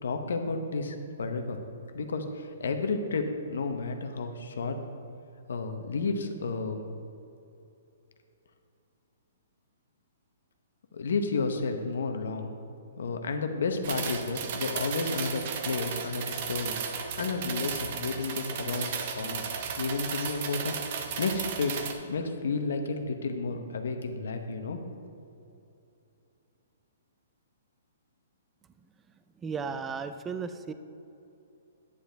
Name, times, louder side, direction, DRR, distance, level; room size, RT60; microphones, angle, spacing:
voice 1, 0.0-1.6 1.9-4.8 5.5-6.8 10.9-12.5 13.0-19.4 19.8-21.8 22.1-25.1, left 4 dB, 85° left, 6 dB, 1.0 m, -32 dB
sound 1, 13.8-21.9, right 6 dB, 40° right, 0.8 m, -34 dB
voice 2, 29.4-30.7, right 5 dB, 10° right, 10 dB, 0.3 m, -34 dB
9.6 x 9.1 x 3.4 m, 2.7 s
hypercardioid pair, 170°, 0 cm